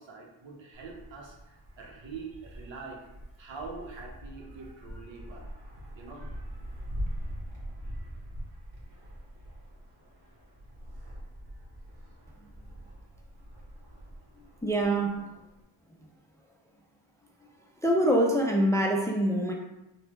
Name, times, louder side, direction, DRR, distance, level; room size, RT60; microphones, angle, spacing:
voice 1, 0.0-3.1 3.4-5.7 5.9-6.6 7.1-7.2, right 4 dB, 65° right, 0 dB, 0.8 m, -44 dB
Wind, 0.7-15.6, equal, 50° right, 1.1 m, -43 dB
voice 2, 14.6-15.2 17.8-19.5, right 1 dB, 5° left, 0 dB, 0.4 m, -25 dB
3.1 x 2.2 x 3.0 m, 0.94 s
cardioid pair, 50°, 48 cm